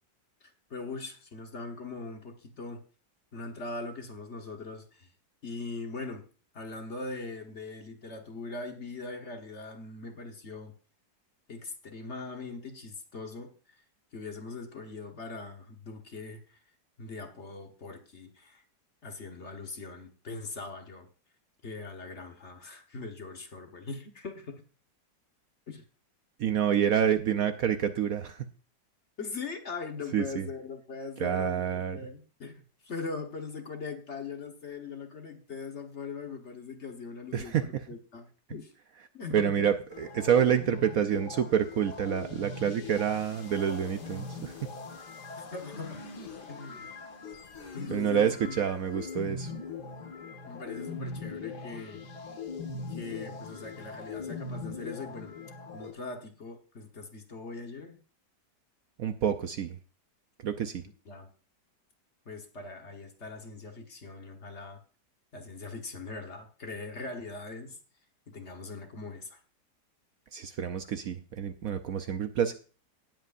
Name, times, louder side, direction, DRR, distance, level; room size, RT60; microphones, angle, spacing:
voice 1, 0.4-2.8 3.3-5.1 5.4-6.3 6.5-10.7 11.5-13.8 14.1-16.6 17.0-18.6 19.0-21.1 21.6-24.6 25.7-25.8 29.2-38.7 39.1-39.6 45.5-46.0 46.5-46.9 47.7-48.7 50.4-52.0 52.9-55.3 55.7-58.0 60.8-61.3 62.2-64.8 65.3-67.8 68.3-69.4, left 3 dB, 40° left, 4 dB, 1.4 m, -41 dB
voice 2, 26.4-28.5 30.1-30.4 31.2-32.0 37.3-37.6 39.3-44.6 47.9-49.5 59.0-59.7 60.4-60.8 70.3-72.5, right 8 dB, 65° right, 8 dB, 1.0 m, -28 dB
sound 1, 39.9-55.9, left 4 dB, 65° left, 2.1 m, -41 dB
18.0 x 8.0 x 2.5 m, 0.38 s
omnidirectional pair, 1.9 m